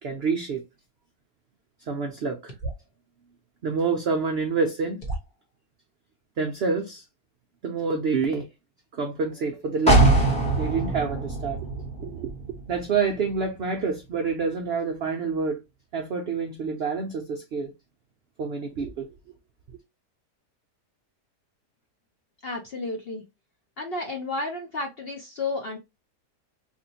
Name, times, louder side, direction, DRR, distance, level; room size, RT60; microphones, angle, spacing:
voice 1, 0.0-0.6 1.9-2.5 3.6-5.0 6.4-7.0 7.6-8.5 8.9-10.2 10.6-11.6 12.0-15.6 15.9-17.7 18.4-19.1, right 5 dB, 85° right, 0.5 m, -27 dB
sound 1, 2.5-3.0 4.3-4.4 5.0-5.5, right 2 dB, 35° left, 1.1 m, -34 dB
sound 2, 9.9-13.6 14.0-14.1, right 2 dB, 5° left, 0.9 m, -23 dB
voice 2, 22.4-23.2 23.8-25.8, left 2 dB, 60° left, 0.6 m, -32 dB
3.5 x 2.5 x 2.7 m
omnidirectional pair, 1.7 m